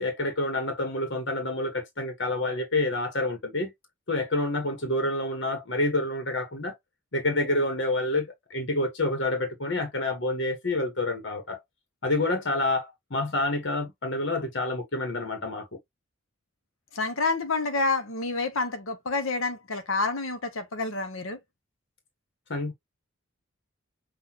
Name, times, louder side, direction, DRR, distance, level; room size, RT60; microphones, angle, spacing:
voice 1, 0.0-3.7 4.1-6.7 7.1-11.6 12.0-15.7 22.5-22.7, left 2 dB, 60° left, 1.3 m, -28 dB
voice 2, 16.9-21.4, left 3 dB, 75° left, 1.0 m, -28 dB
5.9 x 2.6 x 2.9 m
head